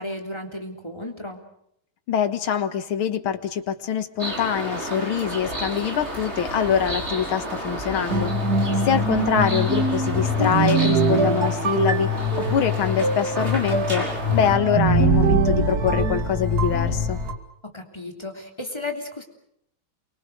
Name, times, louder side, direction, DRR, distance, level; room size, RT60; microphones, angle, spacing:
voice 1, 0.0-1.4 8.7-8.8 17.6-19.2, left 2 dB, 10° left, 3 dB, 3.3 m, -34 dB
voice 2, 2.1-8.3 8.9-17.2, left 8 dB, 85° left, 10 dB, 2.3 m, -24 dB
sound 1, 4.2-14.6, right 1 dB, 30° right, 5.6 m, -32 dB
sound 2, 8.1-17.3, right 1 dB, 50° right, 2.5 m, -22 dB
28.5 x 24.0 x 6.5 m, 0.73 s
omnidirectional pair, 2.3 m